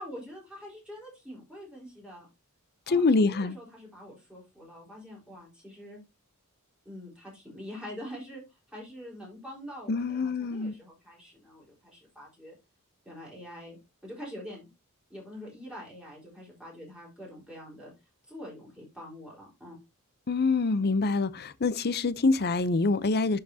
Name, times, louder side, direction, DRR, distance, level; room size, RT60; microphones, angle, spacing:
voice 1, 0.0-2.3 2.9-6.0 6.8-8.4 8.7-12.6 13.0-14.6 15.1-17.9 18.3-19.8, equal, 5° right, 4.3 m, -45 dB
voice 2, 2.9-3.6 9.9-10.7 20.3-23.4, left 3 dB, 45° left, 0.6 m, -25 dB
11.5 x 5.7 x 2.8 m
head